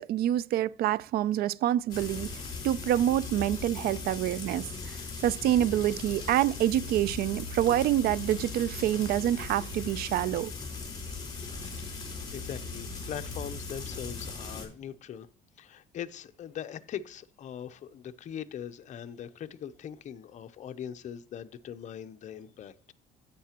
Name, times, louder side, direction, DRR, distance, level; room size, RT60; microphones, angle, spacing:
voice 1, 0.0-2.3 2.6-5.0 5.2-10.5, right 12 dB, 65° right, 0.4 m, -27 dB
Frying (food), 1.9-14.7, left 4 dB, 25° left, 3.9 m, -38 dB
voice 2, 12.3-15.3 15.6-22.7, left 9 dB, 45° left, 0.6 m, -41 dB
10.5 x 8.3 x 2.9 m
cardioid pair, 110°, 17 cm